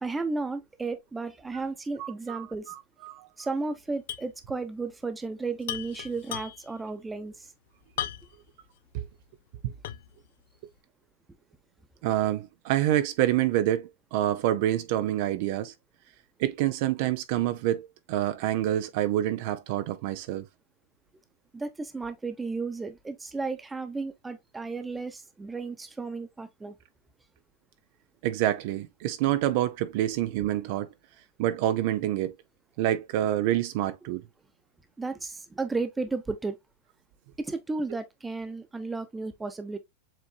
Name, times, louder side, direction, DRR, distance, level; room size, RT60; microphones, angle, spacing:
voice 1, 0.0-2.7 3.4-7.5 21.5-26.7 35.0-36.6 37.4-39.8, right 3 dB, 10° right, 0.9 m, -33 dB
voice 2, 2.0-3.3 8.9-9.0 9.6-9.7 12.0-15.7 16.4-20.5 28.2-30.9 31.4-32.3 32.8-34.2, right 13 dB, 55° right, 0.5 m, -27 dB
sound 1, 4.1-4.3 4.6-4.7 5.6-6.8 8.0-8.5 9.0-9.1 9.8-10.2, left 11 dB, 75° left, 0.6 m, -36 dB
7.4 x 2.6 x 2.3 m
supercardioid pair, 135°, 0 cm